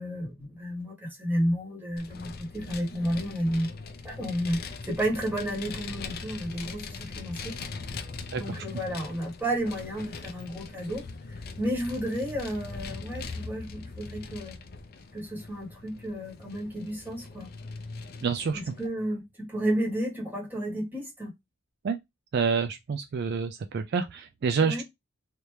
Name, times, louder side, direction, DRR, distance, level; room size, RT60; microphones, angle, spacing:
voice 1, 0.0-3.7 4.0-4.6 4.9-7.6 8.4-11.0 11.6-14.5 15.1-17.5 18.5-21.3 24.6-24.8, equal, 10° right, 1.5 m, -31 dB
Vehicle, 2.0-18.9, left 4 dB, 50° left, 0.5 m, -41 dB
voice 2, 8.3-8.6 18.2-18.7 21.8-22.0 22.3-24.8, right 5 dB, 50° right, 0.3 m, -28 dB
3.4 x 2.7 x 3.1 m
head